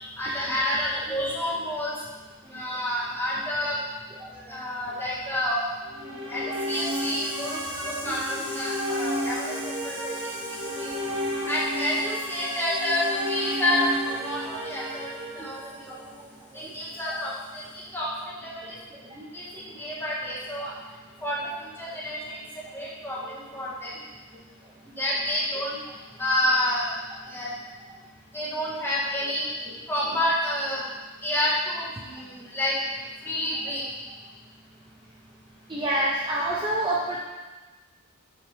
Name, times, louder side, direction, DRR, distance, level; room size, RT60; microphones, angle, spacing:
voice 1, 0.0-1.9 2.5-3.8 4.5-5.7 6.0-10.9 11.5-15.1 15.3-16.2 16.5-18.7 19.3-20.7 21.2-22.4 22.7-24.0 24.8-25.7 26.2-26.9 27.3-27.5 28.3-29.5 29.9-30.8 31.2-32.8 33.2-33.8, left 1 dB, 10° left, -8 dB, 1.7 m, -29 dB
sound 1, 5.8-16.0, equal, 75° right, 1.6 m, -32 dB
voice 2, 35.7-37.2, right 1 dB, 20° right, -5 dB, 0.6 m, -28 dB
7.2 x 4.8 x 3.5 m, 1.2 s
head